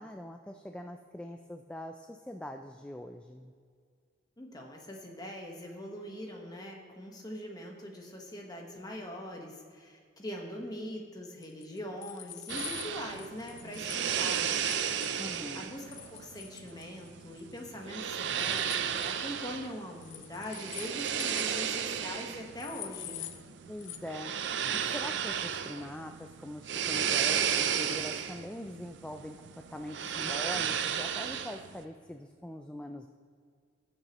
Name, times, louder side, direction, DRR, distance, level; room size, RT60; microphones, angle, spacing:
voice 1, 0.0-3.5 15.2-15.7 23.7-24.3 24.7-33.1, left 1 dB, 5° left, 5 dB, 0.3 m, -43 dB
voice 2, 4.4-14.7 15.5-23.3, left 1 dB, 20° left, 0 dB, 1.3 m, -42 dB
sound 1, 11.4-15.1 15.9-17.1 17.4-17.7 18.0-19.1 20.0-21.6 21.8-21.9 22.1-22.2 22.6-23.4 23.8-24.0, left 12 dB, 90° left, 0.6 m, -45 dB
sound 2, 12.5-31.8, right 8 dB, 75° right, 0.5 m, -34 dB
18.5 x 6.6 x 3.0 m, 2.1 s
head